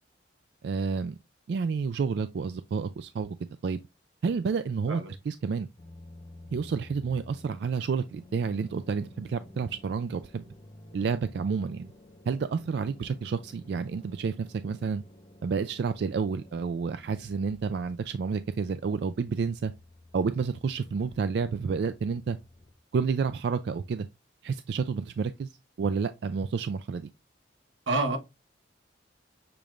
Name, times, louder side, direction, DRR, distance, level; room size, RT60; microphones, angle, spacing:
voice 1, 0.6-1.2 1.5-3.4 3.6-3.8 4.2-5.7 6.5-10.4 10.9-11.9 12.3-15.0 15.4-19.7 20.1-22.4 22.9-24.1 24.4-27.1, right 5 dB, 60° right, 0.3 m, -30 dB
sound 1, 5.8-22.7, left 1 dB, 30° left, 0.7 m, -52 dB
voice 2, 27.9-28.2, right 2 dB, 90° right, 1.2 m, -27 dB
6.9 x 2.4 x 3.1 m
head